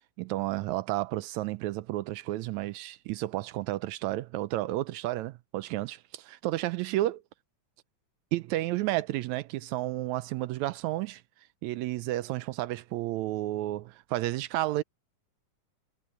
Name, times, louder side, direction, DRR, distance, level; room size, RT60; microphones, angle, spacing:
voice 1, 0.2-7.2 8.3-11.2 11.6-14.8, right 16 dB, 80° right, 1.7 m, -31 dB
omnidirectional pair, 3.7 m